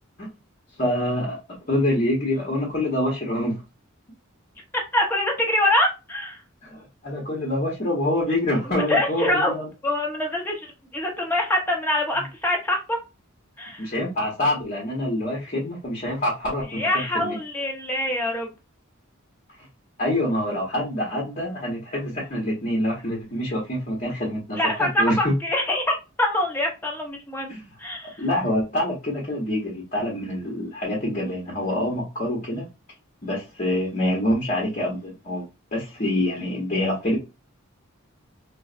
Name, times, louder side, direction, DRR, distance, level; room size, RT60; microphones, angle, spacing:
voice 1, 0.8-1.4 1.7-3.5 6.6-9.7 13.8-17.4 20.0-25.3 27.5-27.6 28.0-32.6 33.2-35.4 35.7-37.2, left 1 dB, 35° left, 0.9 m, -26 dB
voice 2, 4.9-6.4 8.9-9.5 9.8-13.0 13.6-13.9 16.7-18.5 24.5-27.5 27.8-28.2, left 1 dB, 10° left, 0.8 m, -24 dB
3.9 x 2.0 x 2.4 m
head